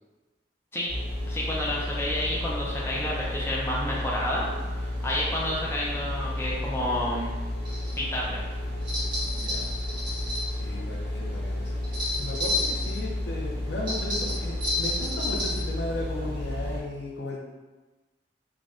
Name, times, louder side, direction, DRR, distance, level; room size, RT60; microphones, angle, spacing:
sound 1, 0.9-16.8, left 1 dB, 80° right, 1.3 m, -32 dB
voice 1, 1.3-4.5 4.8-7.3 8.0-8.4, left 1 dB, 15° left, -5 dB, 0.4 m, -30 dB
sound 2, 7.6-8.0 8.8-10.5 11.8-13.0 13.9-15.7, left 2 dB, 25° right, 0.9 m, -30 dB
voice 2, 9.3-9.7 10.6-11.7 12.2-17.4, left 2 dB, 70° left, -1 dB, 0.5 m, -35 dB
3.4 x 2.2 x 2.5 m, 1.2 s
head